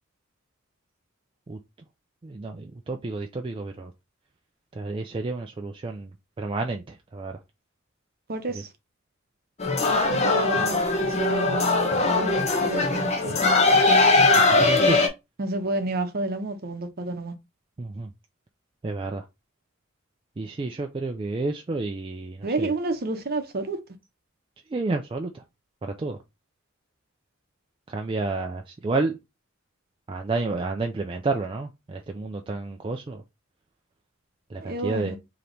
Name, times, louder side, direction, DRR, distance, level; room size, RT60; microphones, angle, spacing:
voice 1, 2.2-3.9 4.7-7.4 8.5-8.6 14.4-15.0 17.8-18.1 18.8-19.3 20.4-22.7 24.7-25.4 25.8-26.2 27.9-29.2 30.1-33.2 34.5-35.2, right 3 dB, 25° right, 0.3 m, -30 dB
voice 2, 8.3-8.7 10.1-13.4 15.4-17.3 22.4-23.8 34.6-35.1, right 2 dB, 45° right, 0.8 m, -30 dB
sound 1, 9.6-15.1, left 3 dB, 30° left, 0.7 m, -20 dB
3.4 x 2.9 x 3.9 m
head